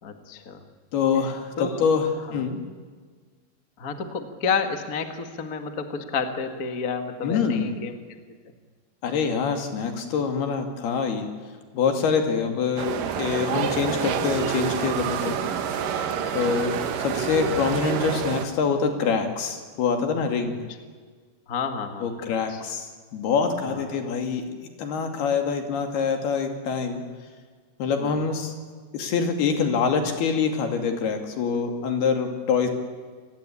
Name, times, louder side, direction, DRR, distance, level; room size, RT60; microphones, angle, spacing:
voice 1, 0.0-0.6 1.6-1.8 3.8-8.0 9.0-9.1 16.3-16.6 21.5-22.6 23.6-23.8 28.0-28.2, left 5 dB, 35° left, 6 dB, 1.4 m, -30 dB
voice 2, 0.9-2.6 7.2-7.7 9.0-11.3 11.7-15.4 16.3-20.6 22.0-27.0 27.8-28.6 28.9-32.7, left 5 dB, 75° left, 4 dB, 4.5 m, -25 dB
sound 1, 12.8-18.5, right 8 dB, 65° right, 2.8 m, -28 dB
28.5 x 19.5 x 8.6 m, 1.5 s
omnidirectional pair, 4.6 m